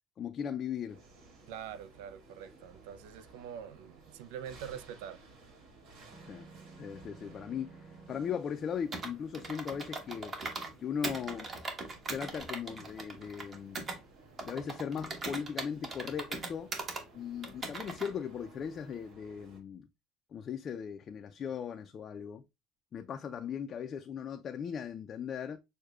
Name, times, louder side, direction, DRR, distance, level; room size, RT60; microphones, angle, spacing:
voice 1, 0.2-1.0 6.3-6.5 6.8-10.4 10.8-11.5 12.1-13.9 14.4-16.7 17.1-19.9 20.3-22.4 22.9-25.6, left 7 dB, 40° left, 0.4 m, -38 dB
sound 1, 0.9-19.6, right 3 dB, 70° right, 1.9 m, -57 dB
voice 2, 1.5-5.2, right 9 dB, 85° right, 0.4 m, -44 dB
sound 2, 6.1-8.4, right 4 dB, 5° right, 0.9 m, -53 dB
Computer keyboard, 8.9-10.7 11.0-14.0 14.4-17.0 17.4-18.1, right 3 dB, 35° right, 1.0 m, -40 dB
6.3 x 2.2 x 2.3 m
supercardioid pair, 105°, 0 cm